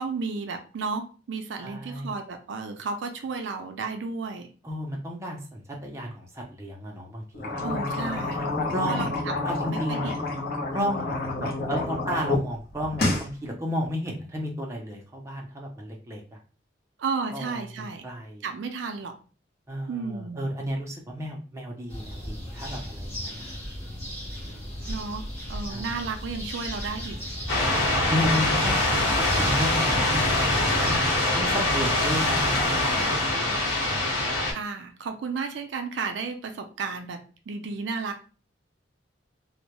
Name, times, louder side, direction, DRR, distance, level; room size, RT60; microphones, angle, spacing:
voice 1, 0.0-4.5 7.6-8.5 8.9-9.1 9.7-10.3 17.0-18.0 18.4-19.1 19.9-20.5 24.9-25.2 25.5-27.2 30.8-31.1 34.5-37.2 37.5-38.2, right 4 dB, 75° right, 5 dB, 0.4 m, -33 dB
voice 2, 1.6-2.1 4.6-7.6 8.7-9.1 9.4-10.1 10.7-16.4 17.3-18.5 19.7-23.6 24.4-24.7 25.7-26.1 27.7-31.0 31.4-33.7, equal, 15° right, 0 dB, 0.4 m, -33 dB
sound 1, 7.3-12.4 12.7-13.3, left 2 dB, 55° left, 0.6 m, -28 dB
sound 2, 21.9-31.0, equal, 10° left, 0.8 m, -35 dB
sound 3, 27.5-34.5, left 2 dB, 75° left, 1.0 m, -24 dB
2.1 x 2.0 x 2.8 m, 0.37 s
head